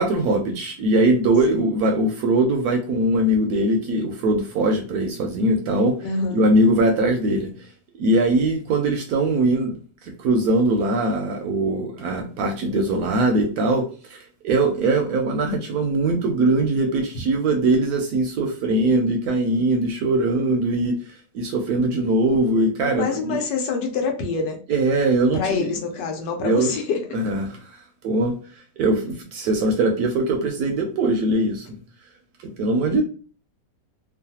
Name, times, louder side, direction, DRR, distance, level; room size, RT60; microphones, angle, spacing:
voice 1, 0.0-6.1 6.3-7.5 8.0-21.0 21.3-23.4 24.7-25.7 26.4-26.7 27.1-27.7 28.0-28.3 28.8-31.8 32.6-33.0, right 2 dB, 70° right, 4 dB, 0.9 m, -21 dB
voice 2, 6.0-6.4 23.0-24.6 25.3-27.0, left 4 dB, 75° left, 3 dB, 1.3 m, -26 dB
3.1 x 2.2 x 2.7 m, 0.39 s
omnidirectional pair, 1.9 m